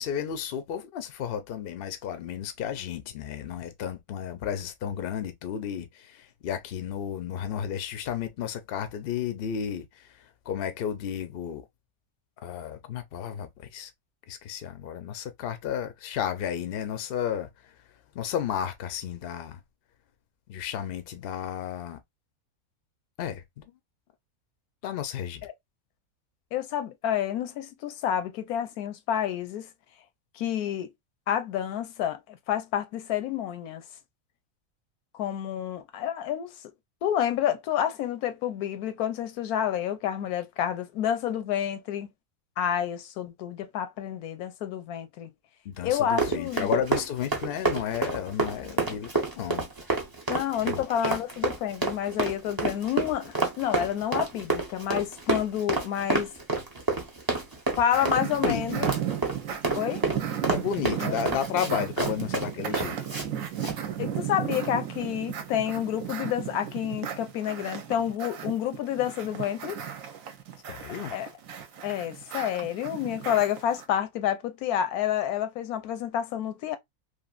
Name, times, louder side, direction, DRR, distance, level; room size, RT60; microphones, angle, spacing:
voice 1, 0.0-10.1 10.5-11.6 12.4-13.9 14.3-17.5 18.1-19.6 20.5-22.0 23.2-23.6 24.8-25.5 45.6-49.6 50.6-51.2 58.2-58.6 60.5-63.0 70.7-71.1, left 9 dB, 60° left, 0.6 m, -33 dB
voice 2, 26.5-29.7 30.3-30.9 31.3-33.8 35.1-36.5 37.0-42.1 42.6-45.3 45.8-46.7 50.3-56.3 57.8-58.9 59.7-60.0 61.0-61.2 64.0-69.8 71.1-71.3 71.8-76.8, left 10 dB, 85° left, 1.1 m, -29 dB
Run, 45.9-63.3 63.6-63.8, right 3 dB, 30° right, 0.4 m, -29 dB
sound 1, 57.9-73.8, right 9 dB, 70° right, 1.0 m, -35 dB
3.2 x 2.6 x 2.3 m
omnidirectional pair, 1.6 m